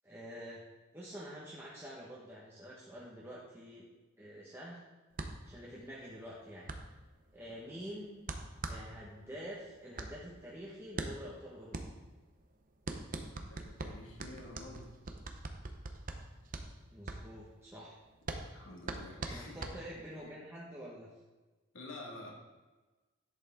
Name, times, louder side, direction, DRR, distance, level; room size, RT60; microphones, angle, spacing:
voice 1, 0.0-0.6 0.9-3.9 4.2-4.8 5.4-6.7 7.3-8.3 8.7-11.8 16.9-18.0 19.3-21.1, equal, 10° right, -6 dB, 1.4 m, -47 dB
sound 1, 5.1-20.3, right 2 dB, 40° right, 0.9 m, -43 dB
voice 2, 7.5-7.8 13.3-15.0 18.4-19.7 21.7-22.3, left 2 dB, 70° left, 0 dB, 2.2 m, -49 dB
11.0 x 8.3 x 3.7 m, 1.2 s
head